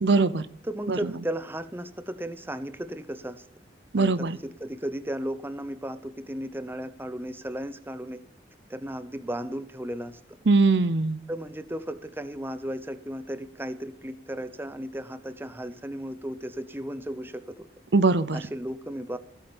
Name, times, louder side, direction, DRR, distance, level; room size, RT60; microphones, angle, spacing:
voice 1, 0.0-0.5 0.9-1.1 3.9-4.4 10.5-11.2 17.9-18.4, right 3 dB, 70° right, 15 dB, 0.7 m, -21 dB
voice 2, 0.6-3.5 4.0-8.2 8.7-10.2 11.3-17.7 18.3-19.2, right 1 dB, 10° right, 11 dB, 0.7 m, -35 dB
15.5 x 8.5 x 7.1 m, 0.62 s
head